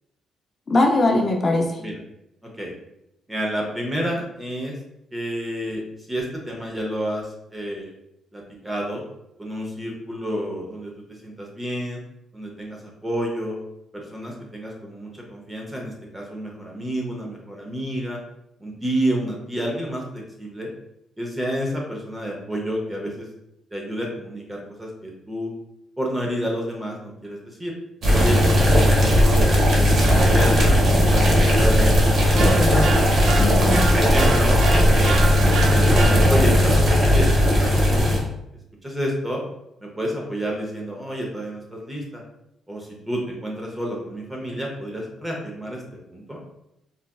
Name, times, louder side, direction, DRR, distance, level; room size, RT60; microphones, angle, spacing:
voice 1, 0.7-1.8 32.4-33.0 33.4-33.9, left 2 dB, 30° left, 1 dB, 0.4 m, -21 dB
voice 2, 2.4-2.7 3.3-4.7 5.1-7.9 8.3-9.0 9.4-12.0 12.3-13.6 13.9-18.2 18.6-20.7 21.2-23.3 23.7-25.5 26.0-27.7 28.1-29.9 30.3-30.8 31.1-32.9 33.6-34.6 34.9-38.2 38.8-39.4 39.8-42.2 42.7-45.8 46.1-46.4, equal, 10° right, -1 dB, 0.6 m, -29 dB
sound 1, 28.0-38.2, equal, 45° right, 0.8 m, -17 dB
sound 2, 32.3-36.7, right 4 dB, 75° right, 0.5 m, -29 dB
3.9 x 2.3 x 2.2 m, 0.84 s
cardioid pair, 140°, 0 cm